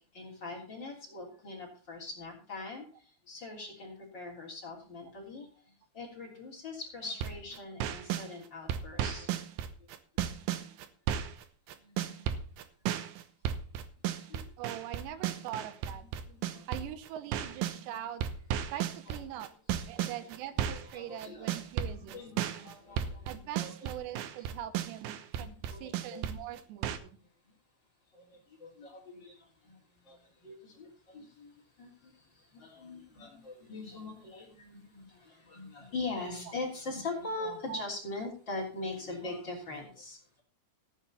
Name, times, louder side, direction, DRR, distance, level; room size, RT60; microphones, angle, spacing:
voice 1, 0.1-2.8 3.3-5.5 5.9-9.4 10.5-10.6 11.8-12.3 14.3-14.4 15.2-15.3 16.3-16.6 17.7-18.0 19.1-19.2 19.7-20.1 20.7-21.6 22.0-23.9 25.4-26.2 28.2-29.4 29.6-29.7 30.1-30.2 30.4-31.5 31.8-32.1 32.4-40.2, left 3 dB, 30° left, -1 dB, 3.4 m, -42 dB
sound 1, 7.1-8.3 8.7-11.4 11.7-17.8 18.2-27.0, right 10 dB, 75° right, 2.3 m, -34 dB
voice 2, 14.6-16.1 16.7-18.2 18.7-19.5 19.9-22.2 23.3-27.2 37.7-37.8, right 11 dB, 90° right, 12 dB, 3.1 m, -42 dB
15.0 x 9.3 x 4.2 m, 0.40 s
omnidirectional pair, 4.9 m